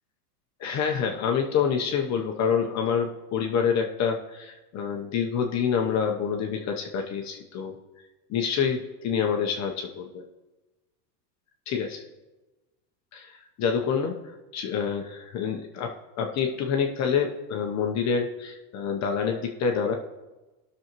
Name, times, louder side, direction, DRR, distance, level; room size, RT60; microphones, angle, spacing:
voice 1, 0.6-7.7 8.3-10.2 11.7-12.0 13.1-14.2 14.5-19.9, left 6 dB, 35° left, 2 dB, 1.0 m, -27 dB
17.5 x 6.4 x 3.1 m, 1.1 s
supercardioid pair, 115°, 48 cm